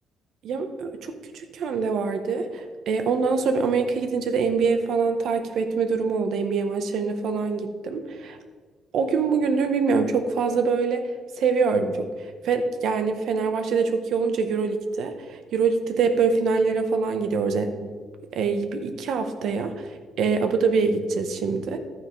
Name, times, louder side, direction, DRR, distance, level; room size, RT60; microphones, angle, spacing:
voice 1, 0.4-8.4 8.9-11.0 11.4-12.1 12.4-17.9 18.3-19.9 20.2-21.8, right 5 dB, 65° right, 7 dB, 0.8 m, -24 dB
11.5 x 9.3 x 3.1 m, 1.5 s
cardioid pair, 150°, 0 cm